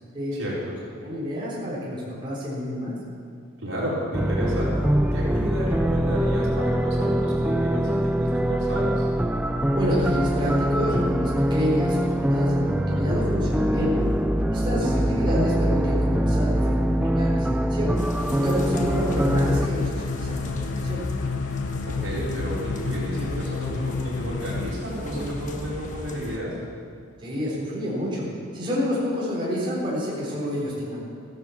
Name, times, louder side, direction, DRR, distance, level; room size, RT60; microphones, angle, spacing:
voice 1, 1.0-2.9 9.7-13.9 14.5-17.9 18.2-21.0 27.2-28.3 28.5-31.0, equal, 25° right, -6 dB, 3.9 m, -29 dB
voice 2, 3.6-4.7 5.1-9.0 14.8-14.9 21.9-26.5, equal, 70° right, -7 dB, 4.5 m, -31 dB
sound 1, 4.1-19.7, equal, 5° right, 0.4 m, -23 dB
sound 2, 18.0-26.4, left 1 dB, 40° left, 1.2 m, -37 dB
sound 3, 18.7-24.7, left 4 dB, 65° left, 0.8 m, -30 dB
15.0 x 10.5 x 7.1 m, 2.3 s
head